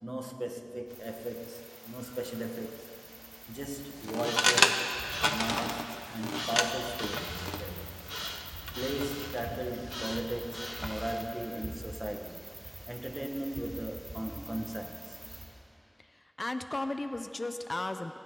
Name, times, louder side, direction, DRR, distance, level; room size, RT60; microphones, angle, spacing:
voice 1, 0.0-3.0 3.5-4.9 5.3-7.9 8.7-12.5 12.9-15.2, right 1 dB, 35° right, 1.6 m, -37 dB
sound 1, 0.9-15.4, right 1 dB, 70° right, 4.3 m, -46 dB
sound 2, 4.0-11.3, left 1 dB, 30° left, 1.3 m, -33 dB
voice 2, 16.0-18.2, left 2 dB, 85° left, 0.9 m, -35 dB
27.0 x 24.5 x 4.0 m
wide cardioid pair, 40°, 0 cm